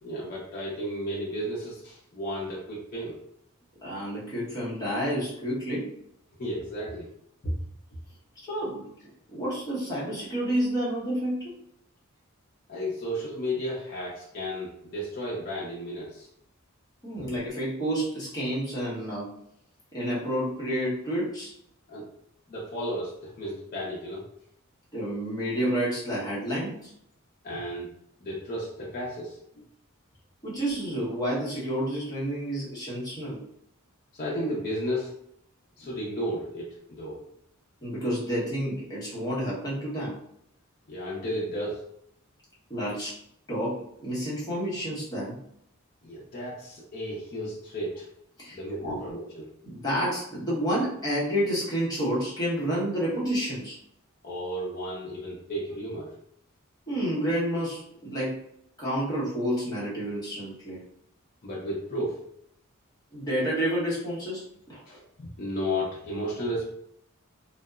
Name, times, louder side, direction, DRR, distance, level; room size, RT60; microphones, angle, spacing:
voice 1, 0.0-3.2 6.4-7.1 7.4-7.5 12.7-16.3 21.9-22.1 22.5-24.2 27.4-27.9 28.2-29.3 34.1-35.1 35.8-37.2 40.9-41.8 46.0-48.1 48.5-49.5 54.2-56.1 61.4-62.1 64.9-66.6, equal, 45° left, -6 dB, 0.6 m, -33 dB
voice 2, 3.8-5.9 8.4-8.9 9.3-11.5 17.0-19.3 19.9-21.5 24.9-26.9 30.4-33.4 37.8-40.2 42.7-43.2 43.5-45.4 48.4-49.0 49.6-53.8 56.9-58.4 58.8-60.8 63.1-64.8, equal, 20° left, -8 dB, 0.9 m, -29 dB
2.8 x 2.1 x 2.3 m, 0.73 s
head